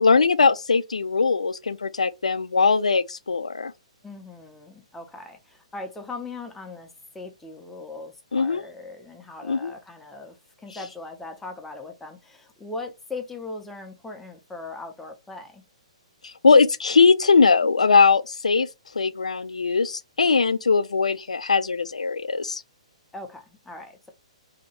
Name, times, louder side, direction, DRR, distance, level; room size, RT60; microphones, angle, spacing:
voice 1, 0.0-3.7 8.3-8.6 9.5-9.7 16.2-18.7 19.0-22.6, left 4 dB, 80° left, 0.3 m, -20 dB
voice 2, 4.0-15.6 23.1-24.1, left 3 dB, 5° left, 0.6 m, -39 dB
2.8 x 2.3 x 2.9 m
figure-of-eight pair, 125°, 4 cm